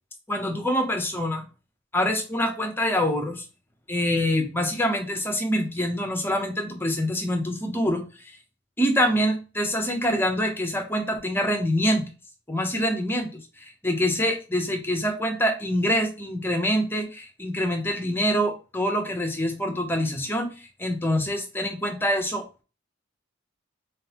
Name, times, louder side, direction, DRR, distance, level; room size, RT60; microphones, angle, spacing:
voice 1, 0.3-1.4 1.9-3.4 3.9-8.0 8.8-12.1 12.5-22.4, equal, 10° left, 4 dB, 0.7 m, -25 dB
3.7 x 3.7 x 2.9 m, 0.32 s
head